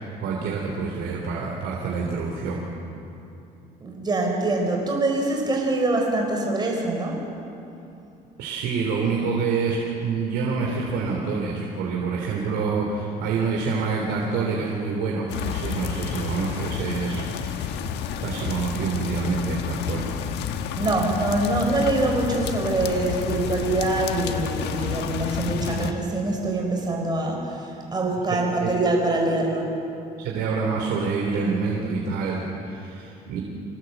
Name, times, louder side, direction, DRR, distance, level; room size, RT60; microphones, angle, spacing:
voice 1, 0.2-2.6 8.4-17.6 18.2-20.0 28.6-28.7 30.2-33.4, right 4 dB, 85° right, -1 dB, 3.4 m, -27 dB
voice 2, 3.8-7.2 20.8-29.7, right 2 dB, 25° right, 0 dB, 4.6 m, -24 dB
sound 1, 15.3-25.9, left 8 dB, 85° left, 1.4 m, -30 dB
26.0 x 18.0 x 8.0 m, 2.8 s
cardioid pair, 110°, 17 cm